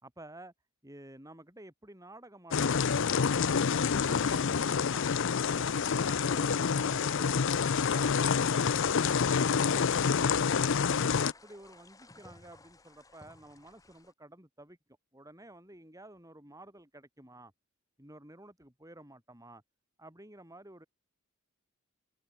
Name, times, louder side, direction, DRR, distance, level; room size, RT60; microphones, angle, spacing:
voice 1, 0.0-0.5 0.8-5.0 5.5-9.1 9.4-14.8 15.1-17.5 18.0-19.6 20.0-20.9, right 1 dB, 15° right, 6.5 m, -51 dB
sound 1, 2.5-11.3, left 6 dB, 60° left, 0.5 m, -27 dB
sound 2, 3.0-14.1, left 2 dB, 15° left, 1.4 m, -54 dB
head